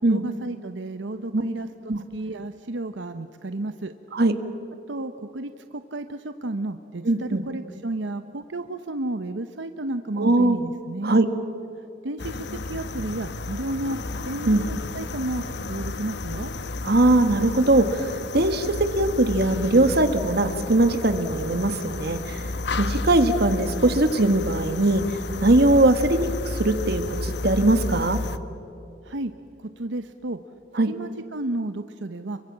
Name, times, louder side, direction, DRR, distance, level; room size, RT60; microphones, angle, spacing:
voice 1, 0.1-1.7 2.1-3.9 4.9-11.2 12.0-16.5 29.0-29.3 29.8-30.4 30.9-32.4, right 2 dB, 85° right, 9 dB, 0.9 m, -32 dB
voice 2, 7.0-7.4 10.2-10.6 11.0-11.3 14.5-14.6 16.8-22.4 22.8-25.0 25.4-28.2 30.7-30.9, right 2 dB, 60° right, 9 dB, 1.6 m, -20 dB
sound 1, 12.2-28.4, left 2 dB, 65° left, 1.0 m, -32 dB
30.0 x 23.5 x 7.4 m, 2.8 s
head